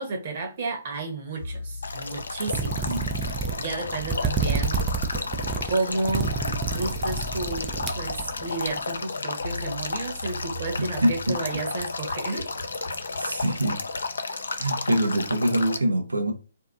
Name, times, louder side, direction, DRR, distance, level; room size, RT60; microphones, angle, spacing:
voice 1, 0.0-2.9 3.6-4.8 5.7-6.3 6.6-12.5, right 3 dB, 45° right, 0.9 m, -31 dB
sound 1, 1.4-14.2, left 1 dB, 60° left, 0.8 m, -41 dB
Male speech man speaking / Stream / Trickle dribble, 1.8-15.8, left 3 dB, 75° left, 0.4 m, -33 dB
sound 2, 2.5-8.7, right 5 dB, 15° right, 0.4 m, -29 dB
voice 2, 11.0-11.6 13.2-13.9 14.6-16.3, right 1 dB, 85° right, 0.6 m, -25 dB
2.6 x 2.3 x 2.5 m
figure-of-eight pair, 135°, 0 cm